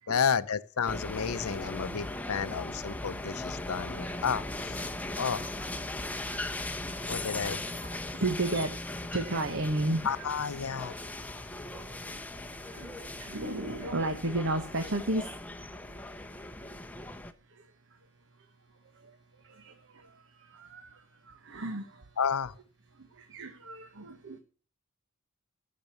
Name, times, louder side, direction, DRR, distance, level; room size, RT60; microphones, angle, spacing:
voice 1, 0.1-5.7 7.1-7.6 8.5-8.6 10.0-10.9 13.6-13.8 22.2-22.5, left 6 dB, 80° left, 0.6 m, -32 dB
sound 1, 0.9-17.3, left 2 dB, 5° left, 0.8 m, -38 dB
voice 2, 5.8-10.3 10.8-11.0 11.4-15.3 17.3-18.0 18.4-18.5 18.8-22.2 22.9-24.4, right 2 dB, 60° right, 1.2 m, -35 dB
15.5 x 6.6 x 7.0 m
head